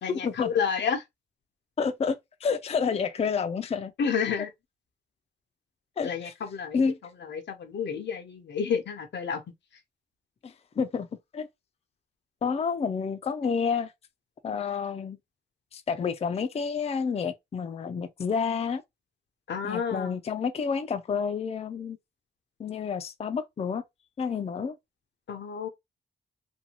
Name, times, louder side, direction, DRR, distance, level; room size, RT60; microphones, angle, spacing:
voice 1, 0.0-1.0 4.0-4.5 6.0-6.8 7.3-9.4 19.5-20.2 25.3-25.7, left 6 dB, 75° left, 0.6 m, -30 dB
voice 2, 1.8-3.9 6.0-6.3 6.7-7.0 10.4-11.5 12.4-13.9 14.4-15.2 15.7-18.8 19.6-22.0 22.6-23.8 24.2-24.8, left 6 dB, 35° left, 0.4 m, -29 dB
2.6 x 2.2 x 2.8 m
cardioid pair, 80°, 19 cm